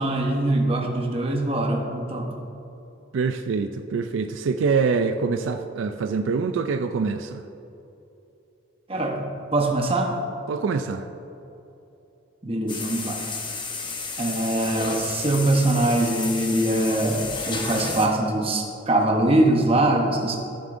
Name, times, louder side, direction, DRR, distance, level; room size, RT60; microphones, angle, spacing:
voice 1, 0.0-2.3 8.9-10.1 12.4-13.2 14.2-20.4, right 1 dB, 30° right, 1 dB, 0.9 m, -23 dB
voice 2, 3.1-7.4 10.5-11.1, right 5 dB, 70° right, 7 dB, 0.3 m, -25 dB
sound 1, 12.7-18.1, left 3 dB, 25° left, 0.8 m, -32 dB
14.5 x 7.3 x 2.6 m, 2.9 s
head